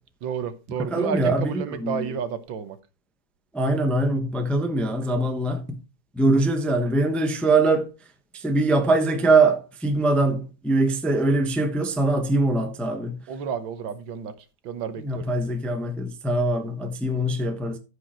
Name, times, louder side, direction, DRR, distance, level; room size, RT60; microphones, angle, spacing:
voice 1, 0.2-2.8 13.3-14.3 14.6-15.3, right 7 dB, 80° right, 1.8 m, -31 dB
voice 2, 0.9-2.1 3.5-5.6 6.2-7.9 8.4-13.2 15.0-17.8, right 2 dB, ahead, 0.7 m, -22 dB
14.0 x 5.1 x 4.3 m
omnidirectional pair, 2.1 m